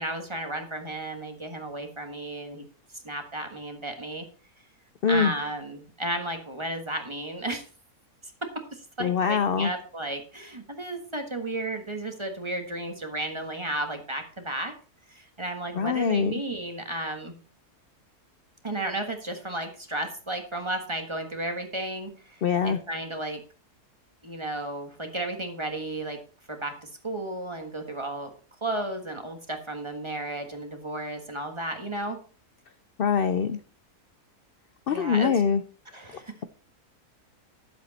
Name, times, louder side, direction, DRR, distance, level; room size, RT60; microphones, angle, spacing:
voice 1, 0.0-2.6 3.0-4.3 5.1-7.7 8.4-14.7 15.1-17.4 18.6-23.4 24.2-26.2 26.5-28.3 28.6-32.2 34.9-35.3 35.9-36.3, right 1 dB, 20° right, 5 dB, 1.4 m, -33 dB
voice 2, 5.0-5.3 9.0-9.7 15.7-16.3 22.4-22.8 33.0-33.6 34.9-35.6, left 6 dB, 65° left, 11 dB, 0.5 m, -23 dB
11.0 x 7.8 x 4.2 m, 0.39 s
omnidirectional pair, 1.6 m